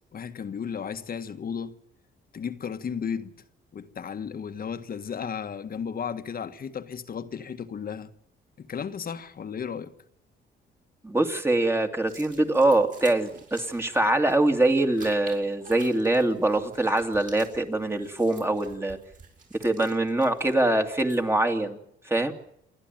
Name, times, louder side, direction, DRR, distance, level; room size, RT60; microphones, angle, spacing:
voice 1, 0.1-1.8 2.3-3.3 3.7-8.1 8.6-9.9, left 7 dB, 50° left, 1.6 m, -34 dB
voice 2, 11.0-19.0 19.6-21.8 22.1-22.3, right 2 dB, 10° right, 2.5 m, -23 dB
sound 1, 12.0-21.4, right 4 dB, 40° right, 7.3 m, -50 dB
28.5 x 11.5 x 9.2 m
cardioid pair, 90°, 20 cm